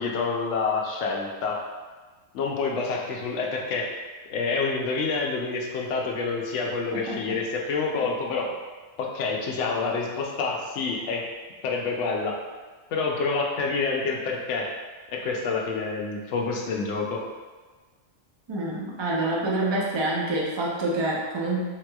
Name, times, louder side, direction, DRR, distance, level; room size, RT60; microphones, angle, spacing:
voice 1, 0.0-1.6 2.3-3.9 4.3-8.5 9.0-11.2 11.6-12.3 12.9-14.7 15.1-17.2, left 4 dB, 75° left, -1 dB, 0.9 m, -27 dB
voice 2, 6.9-7.4 18.5-21.6, right 2 dB, 45° right, -4 dB, 0.3 m, -27 dB
3.5 x 3.0 x 2.2 m, 1.4 s
omnidirectional pair, 1.3 m